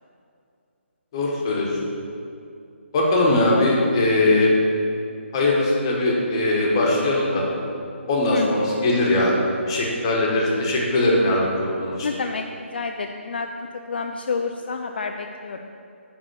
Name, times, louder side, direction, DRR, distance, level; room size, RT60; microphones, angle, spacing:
voice 1, 1.1-1.7 2.9-4.5 5.3-7.4 8.1-9.3 9.7-12.1, left 2 dB, 20° left, -3 dB, 1.1 m, -20 dB
voice 2, 12.0-15.7, left 4 dB, 50° left, 4 dB, 0.4 m, -29 dB
9.7 x 3.6 x 6.6 m, 2.6 s
hypercardioid pair, 175°, 7 cm